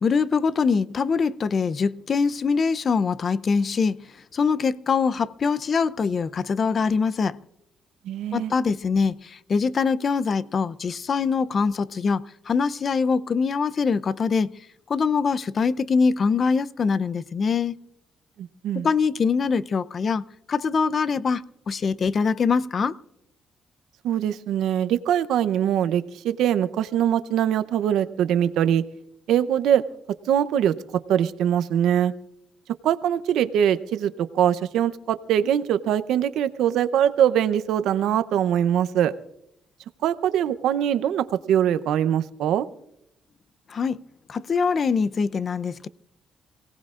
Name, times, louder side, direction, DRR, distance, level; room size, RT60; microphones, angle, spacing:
voice 1, 0.0-4.0 4.3-7.4 8.3-14.5 14.9-17.8 18.7-23.0 43.7-44.0 44.3-45.9, left 5 dB, 45° left, 0.6 m, -23 dB
voice 2, 8.1-8.5 18.4-18.9 24.0-28.8 29.3-29.8 30.3-30.7 31.1-32.1 32.8-39.1 40.0-42.7, right 10 dB, 85° right, 0.7 m, -22 dB
28.0 x 18.0 x 2.5 m
cardioid pair, 90°, 0 cm